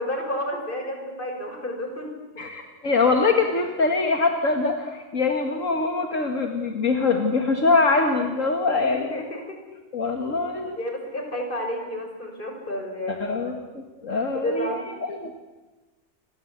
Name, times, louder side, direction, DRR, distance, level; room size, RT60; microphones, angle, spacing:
voice 1, 0.0-2.1 8.8-9.6 10.8-13.5 14.4-14.8, left 1 dB, 40° left, 3 dB, 6.0 m, -31 dB
voice 2, 2.4-9.1 9.9-10.8 13.1-14.8 15.1-15.3, left 3 dB, 75° left, 4 dB, 2.5 m, -23 dB
29.0 x 25.0 x 8.3 m, 1.2 s
omnidirectional pair, 1.4 m